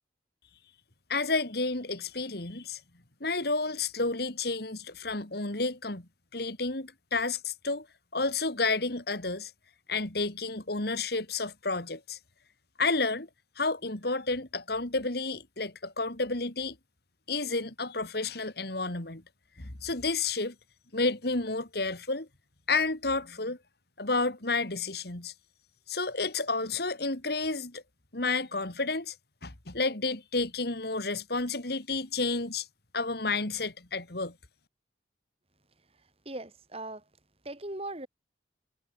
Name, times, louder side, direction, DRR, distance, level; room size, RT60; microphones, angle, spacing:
voice 1, 1.1-2.8 3.2-6.0 6.3-7.9 8.1-9.5 9.9-12.2 12.8-13.3 13.6-16.8 17.3-19.2 19.6-20.5 20.9-22.3 22.7-23.6 24.0-25.3 25.9-27.8 28.1-29.1 29.4-32.7 32.9-34.3, left 3 dB, 55° left, 2.7 m, -31 dB
voice 2, 36.3-37.0 37.5-38.1, right 2 dB, 30° right, 3.7 m, -39 dB
head